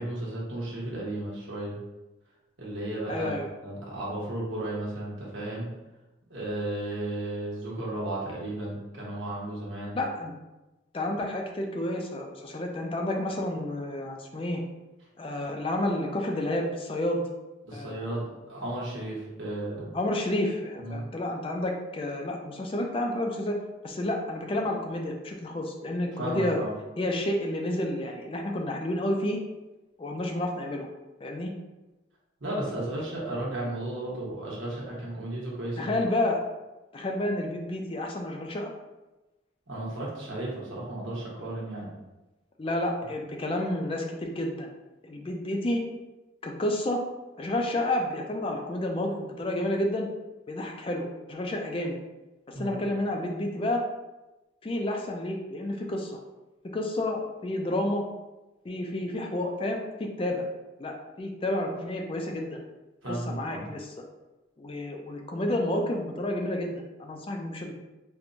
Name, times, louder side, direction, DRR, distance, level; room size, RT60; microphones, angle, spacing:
voice 1, 0.0-1.8 2.6-3.3 3.6-5.7 6.3-10.0 17.7-19.9 20.8-21.0 26.2-26.7 32.4-36.0 39.7-41.9 52.5-52.8 63.0-63.6, right 1 dB, 90° right, -5 dB, 1.1 m, -34 dB
voice 2, 3.1-3.5 9.9-10.3 10.9-14.6 15.2-17.2 17.7-18.2 19.9-23.6 23.8-26.6 27.0-29.4 30.0-30.9 31.2-31.5 35.8-36.4 36.9-38.7 42.6-44.7 45.0-45.8 46.4-47.0 47.4-50.1 50.5-52.0 52.6-53.8 54.6-56.1 56.7-58.0 58.6-60.4 60.8-62.6 63.1-63.9 64.6-67.7, left 1 dB, 30° left, 2 dB, 0.4 m, -30 dB
4.3 x 2.2 x 2.6 m, 1.1 s
head